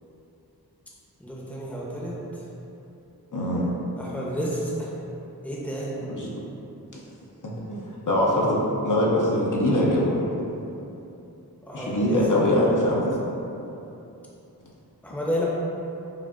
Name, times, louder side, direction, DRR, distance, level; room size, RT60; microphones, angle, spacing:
voice 1, 1.2-2.4 4.0-4.9 5.4-5.9 11.6-12.2 15.0-15.4, equal, 5° left, -5 dB, 0.7 m, -31 dB
voice 2, 3.3-3.7 6.1-6.4 7.7-7.8 8.1-10.2 11.7-13.1, left 1 dB, 55° left, -5 dB, 0.6 m, -22 dB
4.9 x 2.6 x 2.5 m, 2.9 s
wide cardioid pair, 40°, 38 cm